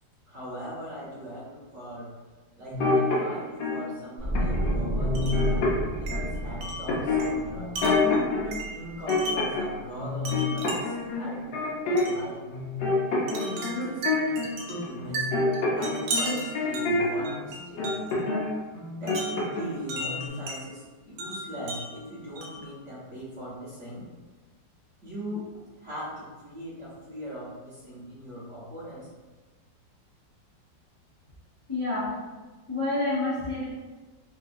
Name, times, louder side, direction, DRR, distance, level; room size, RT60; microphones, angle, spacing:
voice 1, 0.3-2.1 2.6-7.7 8.3-12.4 13.3-15.3 15.7-17.9 19.0-24.0 25.0-29.1, equal, 45° right, -9 dB, 1.2 m, -40 dB
sound 1, 2.7-3.8 4.4-4.7 5.0-6.3 6.9-8.4 8.8-9.7 10.0-12.2 12.5-17.4 17.8-18.5 18.7-19.8 20.0-20.3, left 3 dB, 75° left, 1.5 m, -27 dB
sound 2, 4.2-9.3 9.5-9.8, right 1 dB, 10° left, 1.2 m, -31 dB
Wind chime, 5.1-5.5 6.1-9.6 10.2-11.1 12.0-12.2 13.3-18.2 19.1-20.6 21.2-22.7, right 1 dB, 80° right, 1.3 m, -36 dB
voice 2, 31.7-32.2 32.7-33.6, left 2 dB, 50° left, -10 dB, 0.4 m, -28 dB
3.7 x 2.7 x 2.5 m, 1.3 s
omnidirectional pair, 2.0 m